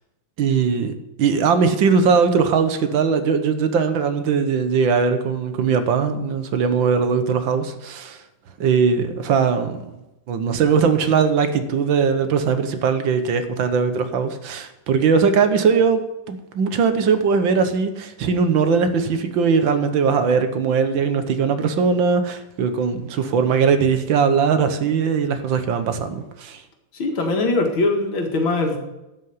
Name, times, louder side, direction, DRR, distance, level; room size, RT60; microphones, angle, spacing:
voice 1, 0.4-8.2 8.6-9.9 10.3-16.0 16.3-26.6, right 5 dB, 75° right, 9 dB, 1.7 m, -20 dB
voice 2, 26.9-28.8, left 2 dB, 80° left, 3 dB, 2.6 m, -21 dB
12.0 x 5.7 x 9.2 m, 0.95 s
omnidirectional pair, 2.2 m